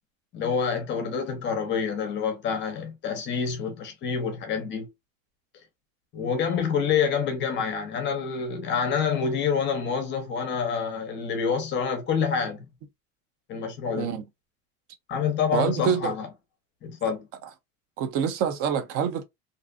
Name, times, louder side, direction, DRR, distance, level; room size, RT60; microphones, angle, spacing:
voice 1, 0.3-4.9 6.1-12.7 13.5-14.1 15.1-16.3 16.8-17.3, left 6 dB, 30° left, 0.7 m, -27 dB
voice 2, 13.9-14.2 15.5-16.2 18.0-19.2, right 8 dB, 35° right, 0.5 m, -26 dB
2.6 x 2.4 x 2.4 m
supercardioid pair, 150°, 40 cm